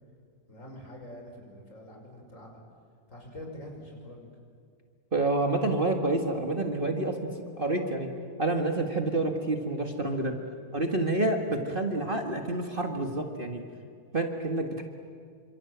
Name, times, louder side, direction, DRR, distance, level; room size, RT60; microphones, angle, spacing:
voice 1, 0.5-2.6 3.1-4.3, left 1 dB, 50° left, 1 dB, 5.9 m, -45 dB
voice 2, 5.1-7.2 7.6-8.1 8.4-10.4 10.7-13.7 14.1-14.8, right 2 dB, 35° right, 4 dB, 1.9 m, -28 dB
28.0 x 26.0 x 8.1 m, 2.2 s
omnidirectional pair, 1.7 m